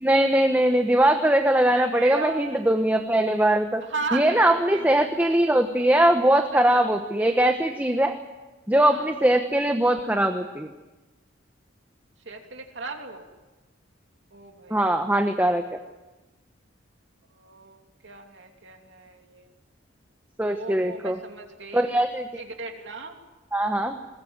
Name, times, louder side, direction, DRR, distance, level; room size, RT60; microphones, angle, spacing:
voice 1, 0.0-3.8 4.1-8.2 8.7-10.7 14.7-15.6 20.4-21.2 21.7-22.4 23.5-24.0, right 1 dB, 10° right, 5 dB, 1.1 m, -21 dB
voice 2, 1.7-2.5 3.9-5.0 6.7-6.9 8.9-9.1 12.2-13.3 14.3-14.9 17.4-19.5 20.5-22.0 22.4-23.2, right 4 dB, 70° right, 3 dB, 2.8 m, -36 dB
21.0 x 20.5 x 8.9 m, 1.1 s
head